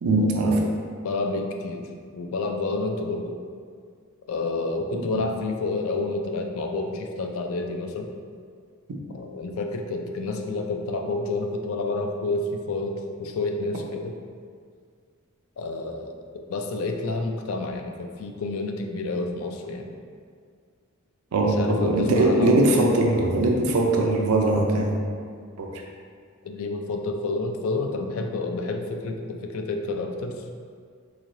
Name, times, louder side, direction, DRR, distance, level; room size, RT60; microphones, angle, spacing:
voice 1, 0.0-0.6 5.1-5.2 21.3-25.0 25.6-25.7, right 2 dB, 75° right, 0 dB, 0.5 m, -21 dB
voice 2, 1.0-1.9 2.1-3.4 4.3-8.1 9.1-14.1 15.6-19.9 21.4-22.7 26.4-30.4, left 3 dB, 70° left, 4 dB, 0.4 m, -29 dB
3.7 x 3.1 x 2.6 m, 2.1 s
head